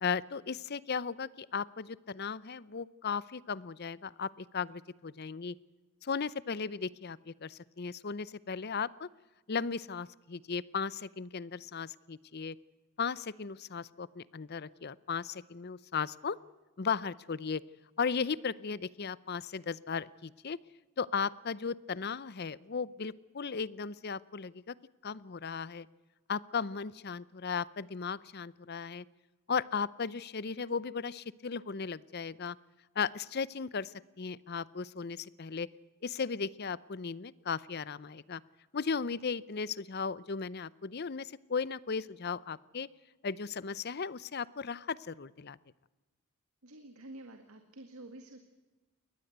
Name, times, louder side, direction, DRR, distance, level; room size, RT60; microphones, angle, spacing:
voice 1, 0.0-5.5 6.0-9.1 9.5-12.6 13.0-16.4 16.8-17.6 18.0-20.6 21.0-24.7 25.0-25.9 26.3-29.0 29.5-32.6 33.0-33.9 34.2-35.7 36.0-38.4 38.7-42.9 43.2-45.6, left 5 dB, 50° left, 20 dB, 0.6 m, -36 dB
voice 2, 46.6-48.4, right 1 dB, 85° right, 6 dB, 2.0 m, -49 dB
22.5 x 19.0 x 8.0 m, 1.2 s
head